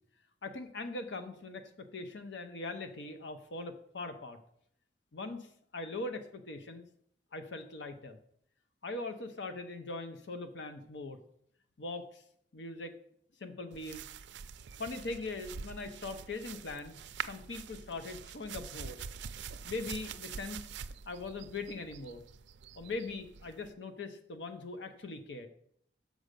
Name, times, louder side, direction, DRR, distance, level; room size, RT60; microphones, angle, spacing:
voice 1, 0.4-4.4 5.1-5.5 5.7-6.9 7.3-8.2 8.8-11.2 11.8-12.2 12.5-13.0 13.4-14.0 14.8-19.0 19.6-20.7 21.1-22.2 22.8-25.5, left 3 dB, 80° left, 8 dB, 0.7 m, -41 dB
sound 1, 13.7-23.7, right 7 dB, 75° right, 0.4 m, -45 dB
6.3 x 5.1 x 6.6 m, 0.67 s
head